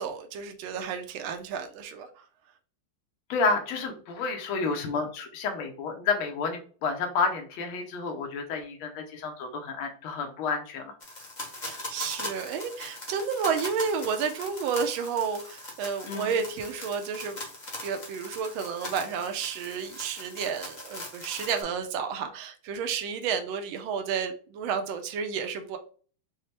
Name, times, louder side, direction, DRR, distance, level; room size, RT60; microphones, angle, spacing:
voice 1, 0.0-2.1 11.6-17.4 17.8-25.8, right 6 dB, 80° right, 1.4 m, -31 dB
voice 2, 3.3-10.9 16.1-16.3, left 4 dB, 80° left, 1.6 m, -30 dB
sound 1, 11.0-21.6, left 1 dB, 40° left, 0.6 m, -40 dB
5.6 x 2.0 x 3.2 m
omnidirectional pair, 2.3 m